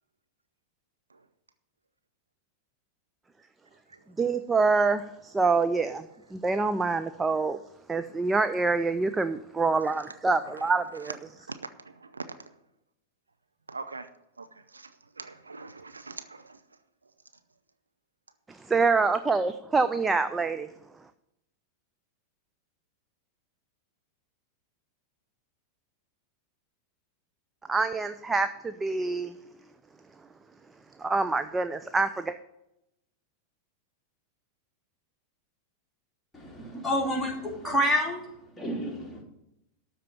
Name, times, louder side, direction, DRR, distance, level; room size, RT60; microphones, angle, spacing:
voice 1, 4.2-6.1 6.3-7.6 7.9-11.1 18.5-20.7 27.7-29.3 31.0-32.3, right 4 dB, 10° right, 10 dB, 0.5 m, -26 dB
voice 2, 11.8-12.3 13.7-14.1 14.4-14.5 14.7-14.9 15.2-16.6, right 3 dB, 80° right, 9 dB, 0.7 m, -41 dB
voice 3, 36.3-38.3 38.6-39.2, equal, 5° left, -2 dB, 2.9 m, -28 dB
12.5 x 4.5 x 8.2 m, 0.84 s
figure-of-eight pair, 90°, 0 cm